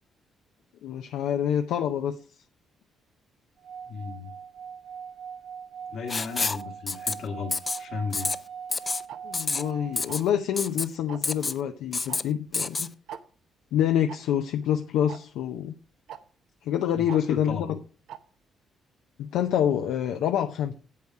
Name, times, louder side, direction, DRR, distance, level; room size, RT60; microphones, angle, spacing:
voice 1, 0.8-2.2 9.2-12.9 13.7-15.7 16.6-17.8 19.2-20.7, left 10 dB, 90° left, 6 dB, 0.6 m, -27 dB
Singing / Glass, 3.6-10.2, right 7 dB, 60° right, 2.5 m, -41 dB
voice 2, 3.9-4.3 5.9-8.3 16.9-17.7, left 5 dB, 70° left, 5 dB, 1.7 m, -35 dB
Writing, 6.1-6.6 6.9-7.1 7.5-7.8 8.1-8.4 8.7-9.0 9.3-9.6 10.0-10.2 10.6-10.9 11.2-11.6 11.9-12.2 12.5-12.9, left 4 dB, 30° left, 0.5 m, -28 dB
Tick-tock, 9.1-9.2 10.1-10.4 11.1-11.3 12.1-12.2 12.5-12.6 13.1-13.2 14.1-14.2 15.1-15.2 16.1-16.2 17.1-17.2 18.1-18.2, right 9 dB, 80° right, 0.7 m, -40 dB
8.6 x 7.9 x 4.8 m, 0.39 s
cardioid pair, 90°, 0 cm